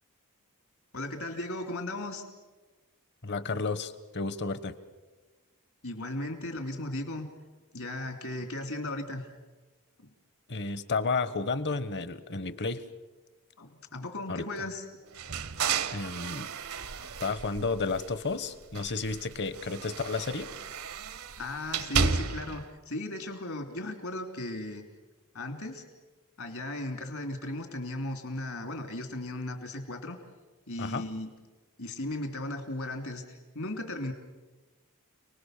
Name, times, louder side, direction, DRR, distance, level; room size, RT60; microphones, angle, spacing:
voice 1, 0.9-2.2 5.8-7.3 7.7-9.2 13.6-14.8 21.4-24.8 25.3-25.8 26.4-30.2 30.7-31.3 31.8-34.1, left 1 dB, 70° left, 6 dB, 3.3 m, -36 dB
voice 2, 3.2-4.7 10.5-12.8 14.3-14.5 15.9-16.5 17.2-20.5 30.8-31.0, left 4 dB, 50° left, 13 dB, 1.3 m, -32 dB
sound 1, 15.1-18.3 18.7-22.6, right 6 dB, 70° right, 1.0 m, -33 dB
29.5 x 20.0 x 6.7 m, 1.2 s
head